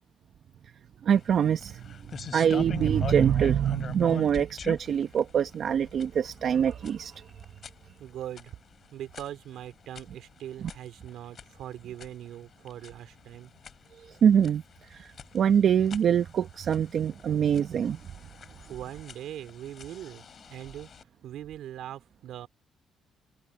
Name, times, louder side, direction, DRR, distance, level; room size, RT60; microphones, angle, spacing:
voice 1, 1.0-1.8 2.3-7.2 14.0-14.6 14.9-18.0, right 8 dB, 60° right, 0.9 m, -24 dB
sound 1, 1.1-21.0, left 7 dB, 50° left, 3.8 m, -44 dB
voice 2, 8.0-8.6 8.9-13.5 18.7-20.9 21.2-22.5, right 11 dB, 80° right, 2.9 m, -41 dB
open air
cardioid pair, 90°, 0 cm